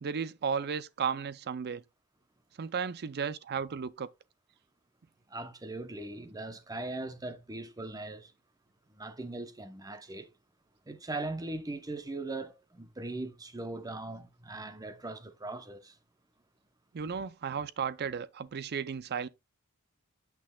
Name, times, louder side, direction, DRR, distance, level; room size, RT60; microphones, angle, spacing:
voice 1, 0.0-1.8 2.6-4.1 16.9-19.3, right 6 dB, 50° right, 0.5 m, -34 dB
voice 2, 5.3-8.3 8.9-10.3 10.9-16.0, right 2 dB, 15° right, 0.8 m, -40 dB
8.6 x 5.8 x 2.3 m
head